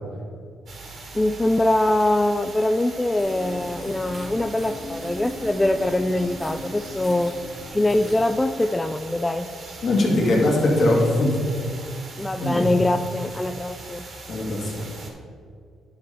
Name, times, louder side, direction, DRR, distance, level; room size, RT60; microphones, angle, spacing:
sound 1, 0.7-15.1, right 3 dB, 55° right, 1.9 m, -41 dB
voice 1, 1.1-7.4 7.7-9.5 12.2-14.1, left 1 dB, 15° left, 8 dB, 0.3 m, -23 dB
sound 2, 3.2-8.3, equal, 10° right, 1.2 m, -38 dB
voice 2, 9.8-11.4 12.4-12.7 14.3-14.9, left 1 dB, 55° left, -1 dB, 2.1 m, -21 dB
11.0 x 5.4 x 4.3 m, 2.2 s
cardioid pair, 90°, 0 cm